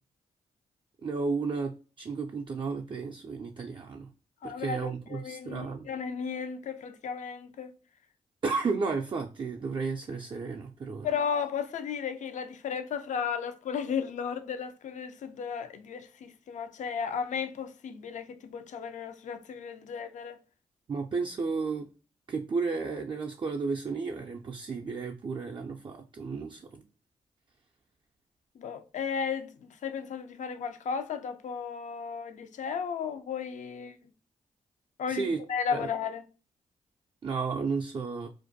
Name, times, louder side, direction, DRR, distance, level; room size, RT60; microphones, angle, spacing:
voice 1, 1.0-4.1 4.4-5.9 8.4-11.1 20.9-21.9 22.3-26.8 35.1-35.4 35.7-35.9 37.2-38.3, right 4 dB, 35° right, 0.3 m, -33 dB
voice 2, 4.4-7.7 11.0-20.4 28.6-34.0 35.0-36.2, left 6 dB, 60° left, 0.4 m, -34 dB
2.5 x 2.2 x 2.6 m
supercardioid pair, 50°, 14 cm